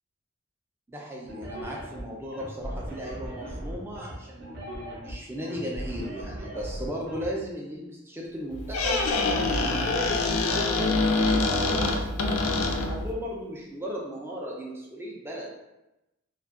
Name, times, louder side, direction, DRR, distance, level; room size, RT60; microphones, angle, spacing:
voice 1, 0.9-9.0 9.5-15.5, equal, 10° right, -2 dB, 0.4 m, -36 dB
sound 1, 1.3-7.3, right 1 dB, 50° right, 0.7 m, -38 dB
Squeak, 8.5-13.1, left 3 dB, 85° left, 0.4 m, -25 dB
2.6 x 2.3 x 2.4 m, 0.95 s
head